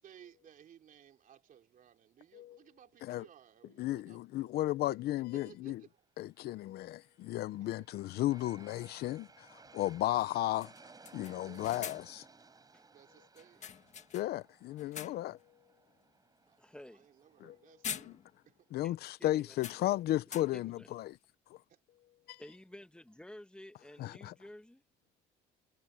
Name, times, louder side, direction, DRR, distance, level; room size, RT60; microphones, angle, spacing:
voice 1, 0.0-4.5 5.3-6.1 7.6-7.7 11.5-12.0 12.9-13.7 14.9-15.0 16.5-18.2 18.5-18.7 21.7-21.8 22.3-22.4, right 9 dB, 55° right, 3.7 m, -59 dB
voice 2, 3.8-5.8 6.2-10.7 11.1-12.0 14.1-15.4 17.4-17.6 17.9-18.1 18.7-21.2 21.5-21.6 22.3-22.4 24.0-24.3, left 15 dB, 70° left, 0.7 m, -34 dB
sound 1, 7.0-7.1 9.2-9.3 9.7-9.8 10.2-10.3 10.6-12.3 13.4-14.5 14.8-15.4 15.9-16.1 17.3-17.5 17.8-18.6 18.8-18.9 19.5-20.8, left 8 dB, 45° left, 1.5 m, -46 dB
Aircraft, 7.2-18.3, right 4 dB, 25° right, 4.8 m, -59 dB
voice 3, 16.6-17.1 18.1-18.2 18.8-18.9 19.2-19.6 20.5-20.9 22.4-24.8, left 1 dB, 5° left, 1.9 m, -52 dB
cardioid pair, 110°, 17 cm